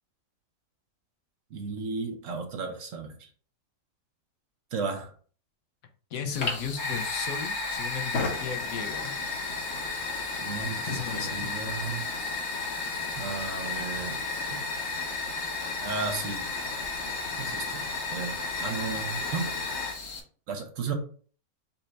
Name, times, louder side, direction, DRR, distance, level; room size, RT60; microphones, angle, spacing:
voice 1, 1.5-3.3 4.7-5.1 10.4-12.1 13.2-14.2 14.5-14.6 15.8-16.5 17.4-19.5 20.5-20.9, right 4 dB, 65° right, 1.2 m, -34 dB
voice 2, 6.1-9.2 10.8-11.5, left 7 dB, 75° left, 1.2 m, -35 dB
Fire, 6.3-20.2, left 3 dB, 55° left, 1.2 m, -33 dB
4.2 x 2.6 x 4.4 m
omnidirectional pair, 1.5 m